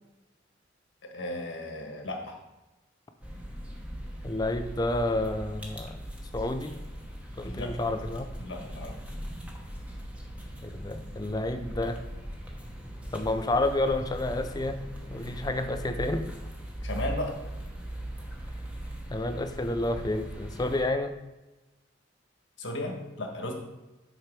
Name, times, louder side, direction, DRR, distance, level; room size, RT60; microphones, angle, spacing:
voice 1, 1.0-2.3 7.4-7.7 8.4-8.9 16.8-17.3 22.6-23.5, left 1 dB, 75° left, 1 dB, 1.5 m, -35 dB
sound 1, 3.2-20.9, equal, 5° right, 1.0 m, -39 dB
voice 2, 4.2-6.0 6.3-6.8 7.4-8.3 10.6-12.0 13.1-14.8 15.1-16.4 19.1-21.1, left 2 dB, 20° left, 7 dB, 0.5 m, -30 dB
7.5 x 4.7 x 4.7 m, 1.1 s
head